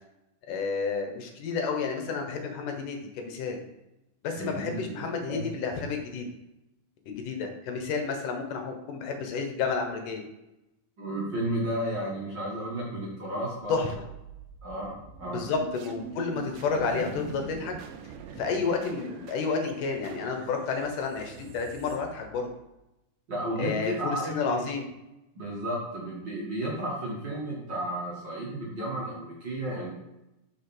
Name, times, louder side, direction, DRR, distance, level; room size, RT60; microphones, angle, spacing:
voice 1, 0.5-3.6 4.2-6.3 7.1-10.2 13.7-14.0 15.2-17.8 18.4-22.5 23.6-24.9, left 5 dB, 80° left, 4 dB, 2.8 m, -31 dB
voice 2, 4.4-5.4 11.0-13.7 14.6-15.4 23.3-24.6 25.4-29.9, right 1 dB, 45° right, -4 dB, 1.8 m, -33 dB
sound 1, 14.1-22.7, right 6 dB, 90° right, 2.3 m, -44 dB
6.3 x 5.3 x 6.0 m, 0.93 s
omnidirectional pair, 3.7 m